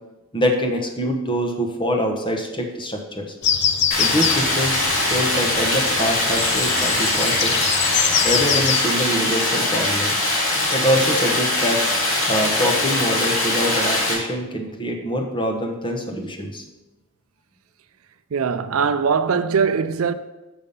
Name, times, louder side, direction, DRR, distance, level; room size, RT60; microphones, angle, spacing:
voice 1, 0.3-3.3 4.0-7.6 8.2-10.1 10.7-11.8 12.2-16.6, equal, 25° left, 1.0 m, -24 dB
sound 1, 3.4-8.8, left 8 dB, 55° left, 0.6 m, -24 dB
Stream, 3.9-14.1, left 2 dB, 75° left, 2.3 m, -22 dB
voice 2, 18.3-20.1, right 6 dB, 80° right, 0.4 m, -21 dB
6.8 x 5.5 x 5.4 m
head